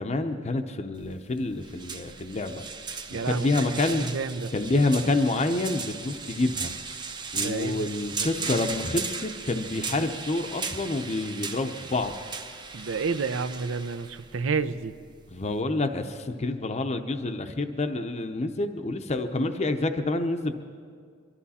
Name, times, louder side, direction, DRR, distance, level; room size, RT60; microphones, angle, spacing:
voice 1, 0.0-2.6 3.1-4.1 4.5-6.7 7.3-12.2 15.3-20.5, left 2 dB, 35° left, 6 dB, 0.6 m, -28 dB
sound 1, 0.9-15.6, right 5 dB, 25° right, 0.7 m, -37 dB
voice 2, 3.1-4.5 7.3-8.3 12.7-14.9, right 4 dB, 75° right, 13 dB, 0.6 m, -30 dB
23.5 x 12.5 x 4.2 m, 2.1 s
head